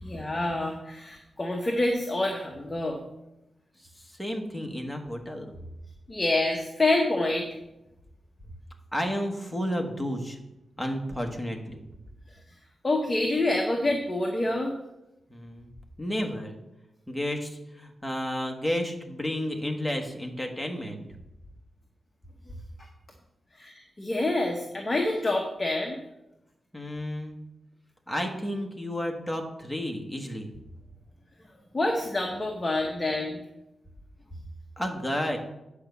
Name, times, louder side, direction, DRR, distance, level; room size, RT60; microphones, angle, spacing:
voice 1, 0.0-3.0 6.1-7.5 12.8-14.7 23.5-26.0 31.7-33.4, left 2 dB, 20° left, 1 dB, 0.9 m, -27 dB
voice 2, 4.0-5.6 8.9-10.4 10.8-11.8 15.3-15.7 16.0-16.6 17.1-21.0 26.7-27.4 28.1-30.5 34.8-35.4, equal, ahead, 1 dB, 1.2 m, -32 dB
8.8 x 5.0 x 7.0 m, 0.92 s
wide cardioid pair, 165°, 0 cm